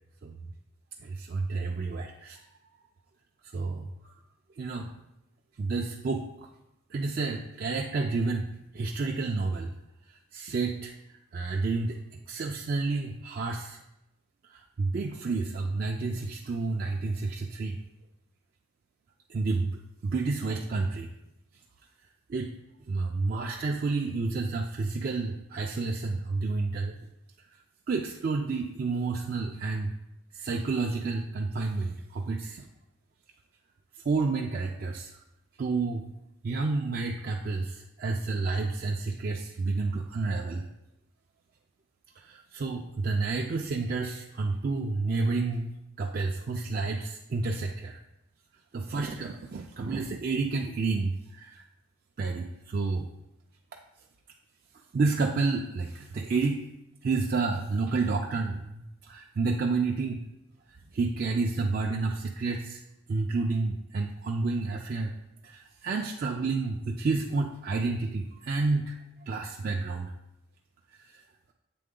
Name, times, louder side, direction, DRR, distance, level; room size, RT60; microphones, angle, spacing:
voice 1, 1.0-2.4 3.5-3.9 4.6-4.9 5.6-6.5 6.9-9.7 10.1-10.9 11.3-12.0 12.3-13.8 14.5-17.8 19.3-19.7 20.0-21.1 22.3-22.5 22.9-27.0 27.9-29.9 30.3-32.7 34.0-35.1 35.6-36.1 36.4-40.6 42.2-48.0 48.7-51.6 52.2-53.1 54.9-56.7 57.0-60.2 60.9-62.8 63.1-65.1 65.4-69.0 69.3-70.1 71.1-71.2, right 3 dB, 40° right, 0 dB, 0.3 m, -30 dB
7.6 x 3.5 x 3.7 m, 0.88 s
head